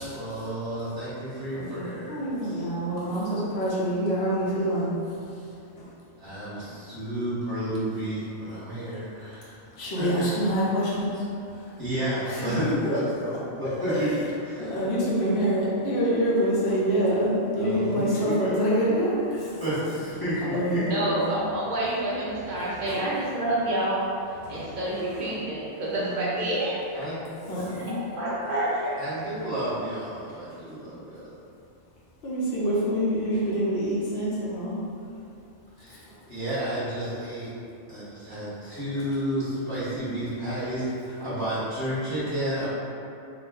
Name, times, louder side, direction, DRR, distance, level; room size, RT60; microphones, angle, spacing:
voice 1, 0.0-2.6 6.2-9.6 10.0-10.3 11.8-14.1 14.4-14.7 17.6-18.5 19.6-21.0 26.9-27.2 29.0-31.3 35.8-37.5 37.9-42.7, right 1 dB, 25° left, -13 dB, 0.7 m, -31 dB
voice 2, 1.5-5.9 6.6-6.8 8.8-9.1 9.7-11.8 12.3-13.0 13.3-14.2 14.6-19.8 20.4-21.3 22.3-23.1 24.4-25.4 25.9-26.5 27.5-28.0 32.2-34.8 36.0-36.2, equal, 65° left, -7 dB, 0.9 m, -27 dB
voice 3, 20.8-24.1 24.5-28.9, right 1 dB, 60° right, -7 dB, 0.5 m, -29 dB
2.4 x 2.1 x 3.4 m, 2.6 s
omnidirectional pair, 1.2 m